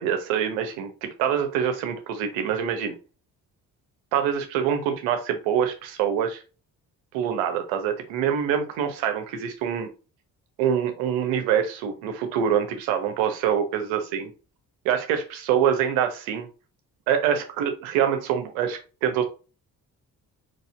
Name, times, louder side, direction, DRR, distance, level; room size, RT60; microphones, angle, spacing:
voice 1, 0.0-3.0 4.1-6.4 7.1-9.9 10.6-14.3 14.8-16.5 17.1-19.2, right 8 dB, 70° right, 7 dB, 1.1 m, -25 dB
4.2 x 3.4 x 3.5 m, 0.33 s
figure-of-eight pair, 40°, 48 cm